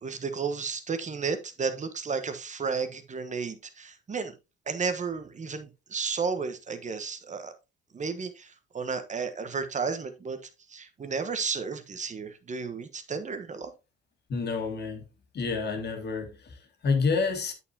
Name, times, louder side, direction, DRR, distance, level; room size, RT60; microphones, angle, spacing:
voice 1, 0.0-4.3 4.7-7.5 7.9-10.4 10.7-13.7, right 5 dB, 35° right, 1.2 m, -33 dB
voice 2, 14.3-15.1 15.3-17.5, left 4 dB, 55° left, 1.9 m, -29 dB
8.2 x 7.0 x 2.8 m
cardioid pair, 90°, 20 cm